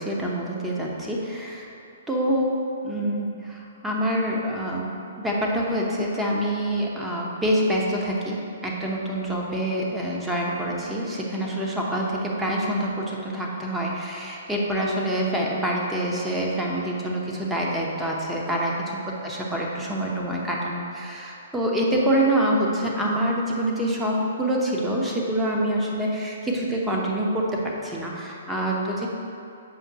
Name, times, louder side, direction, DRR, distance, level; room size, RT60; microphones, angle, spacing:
voice 1, 0.0-1.7 2.1-2.6 2.8-29.1, right 1 dB, 5° right, -3 dB, 0.9 m, -26 dB
7.1 x 5.1 x 2.9 m, 2.7 s
hypercardioid pair, 125°, 0 cm